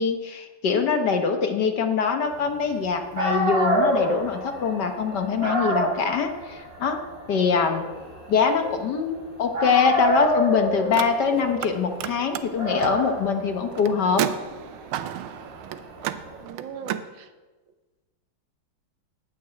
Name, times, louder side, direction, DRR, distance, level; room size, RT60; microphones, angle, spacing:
voice 1, 0.0-7.0 7.3-7.8 8.3-14.3, left 5 dB, 60° left, 6 dB, 1.5 m, -23 dB
Dog, 2.9-3.0 3.2-9.2 9.5-16.3, equal, 30° right, 5.3 m, -28 dB
Car, 10.8-11.7 12.0-17.1, right 11 dB, 85° right, 1.5 m, -32 dB
voice 2, 16.4-17.3, right 6 dB, 70° right, 9 dB, 1.4 m, -38 dB
9.6 x 9.3 x 8.9 m, 1.3 s
omnidirectional pair, 2.3 m